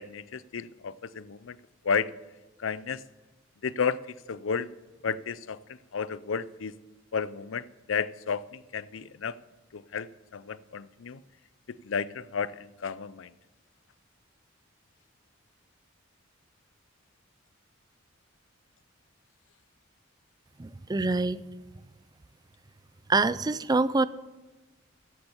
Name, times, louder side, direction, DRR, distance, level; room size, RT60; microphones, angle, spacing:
voice 1, 0.0-1.6 1.8-2.1 2.6-3.0 3.6-4.0 4.3-4.7 5.0-6.7 7.1-9.3 9.7-11.2 11.7-13.3, left 6 dB, 70° left, 18 dB, 0.5 m, -32 dB
voice 2, 20.6-21.4 23.1-24.1, right 3 dB, 20° right, 17 dB, 0.4 m, -25 dB
16.0 x 8.6 x 7.0 m, 1.1 s
head